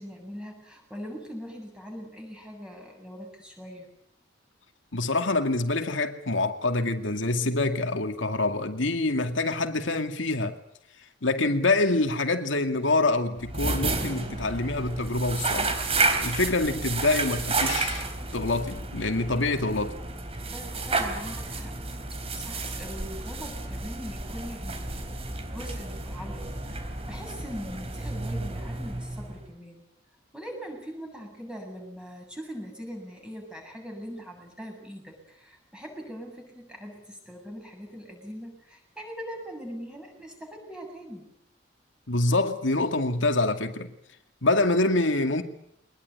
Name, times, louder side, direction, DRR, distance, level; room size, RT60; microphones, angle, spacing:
voice 1, 0.0-3.9 14.1-14.5 20.5-21.8 22.3-29.8 30.3-41.3, equal, 5° right, 7.7 m, -41 dB
voice 2, 4.9-10.6 11.2-15.7 16.2-18.0 18.3-20.0 42.1-43.9 44.4-45.4, left 2 dB, 85° left, 2.3 m, -26 dB
sound 1, 13.4-29.5, right 3 dB, 30° right, 3.7 m, -31 dB
23.5 x 20.5 x 9.7 m
head